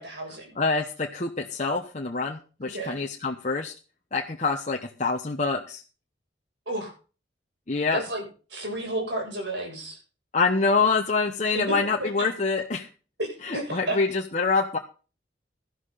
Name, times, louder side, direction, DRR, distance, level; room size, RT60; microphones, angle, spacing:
voice 1, 0.0-0.6 2.6-3.0 6.7-6.9 7.9-8.2 8.5-10.0 11.5-12.3 13.2-14.0, right 1 dB, 70° right, 1 dB, 7.5 m, -32 dB
voice 2, 0.6-3.7 4.1-5.8 7.7-8.0 10.3-12.9 13.4-14.8, left 4 dB, 40° left, 2 dB, 1.1 m, -26 dB
13.0 x 12.0 x 4.1 m, 0.35 s
head